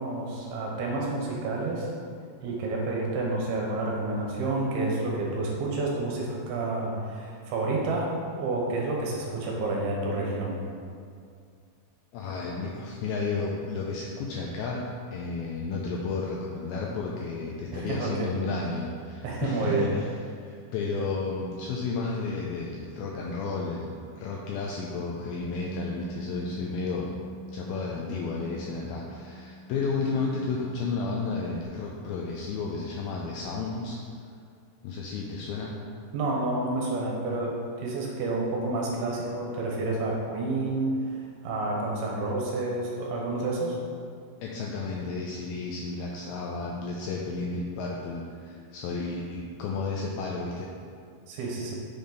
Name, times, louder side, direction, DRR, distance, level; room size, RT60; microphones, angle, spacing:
voice 1, 0.0-1.9 2.4-8.1 8.4-10.6 17.7-18.3 19.2-19.9 36.1-43.8 51.3-51.7, right 2 dB, 75° right, -2 dB, 2.7 m, -29 dB
voice 2, 12.1-20.1 20.4-27.1 27.5-34.0 34.8-35.8 44.4-50.7, left 4 dB, 85° left, -2 dB, 2.1 m, -32 dB
Bass guitar, 25.4-31.7, right 1 dB, 70° left, 3.0 m, -43 dB
7.0 x 5.2 x 3.9 m, 2.2 s
omnidirectional pair, 4.8 m